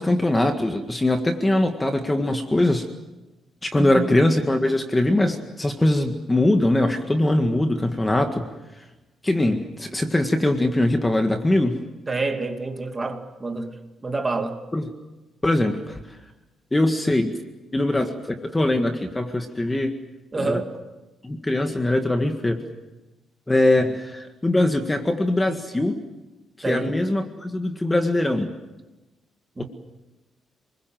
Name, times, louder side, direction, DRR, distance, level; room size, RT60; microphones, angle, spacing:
voice 1, 0.0-2.9 3.6-8.5 9.2-11.8 14.7-14.9 15.4-16.0 16.7-17.3 17.7-20.0 20.4-20.6 21.2-22.6 23.5-26.0 26.7-28.5 29.6-29.7, left 1 dB, 10° left, 1.8 m, -22 dB
voice 2, 3.8-4.1 12.1-13.7 14.0-14.6 20.3-20.7 26.6-26.9 29.6-29.7, right 3 dB, 20° right, 2.6 m, -27 dB
29.5 x 21.5 x 7.7 m
cardioid pair, 140°, 0 cm